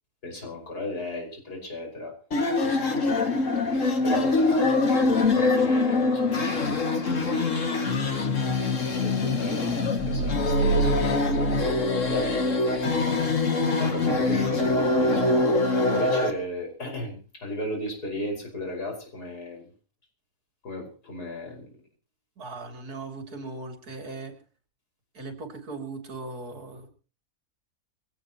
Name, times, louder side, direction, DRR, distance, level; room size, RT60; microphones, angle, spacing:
voice 1, 0.2-2.1 2.6-4.5 5.1-7.9 8.9-12.8 13.8-19.7 20.6-21.7, left 1 dB, 85° left, 2 dB, 6.0 m, -36 dB
sound 1, 2.3-16.3, left 3 dB, 55° left, 2.5 m, -24 dB
sound 2, 10.0-13.0, right 4 dB, 30° left, 8.3 m, -29 dB
voice 2, 22.4-24.3 25.1-26.9, right 3 dB, 75° right, 5 dB, 3.4 m, -38 dB
23.0 x 17.0 x 3.0 m, 0.37 s
omnidirectional pair, 1.6 m